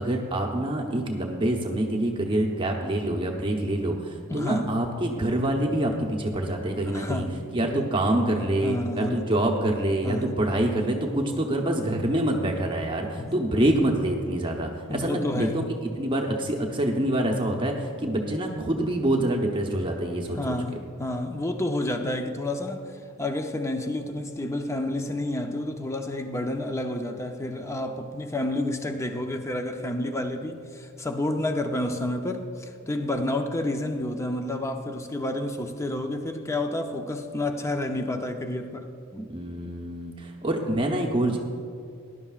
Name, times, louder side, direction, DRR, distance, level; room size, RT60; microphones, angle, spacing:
voice 1, 0.0-7.2 7.5-15.6 16.0-20.5 39.3-41.4, right 1 dB, 25° right, 1 dB, 0.9 m, -26 dB
voice 2, 4.3-4.7 6.9-7.3 7.6-7.9 8.6-9.3 10.0-10.3 13.1-13.5 14.9-15.5 20.3-39.3, left 1 dB, 15° left, 5 dB, 0.6 m, -30 dB
18.5 x 11.0 x 2.4 m, 2.4 s
head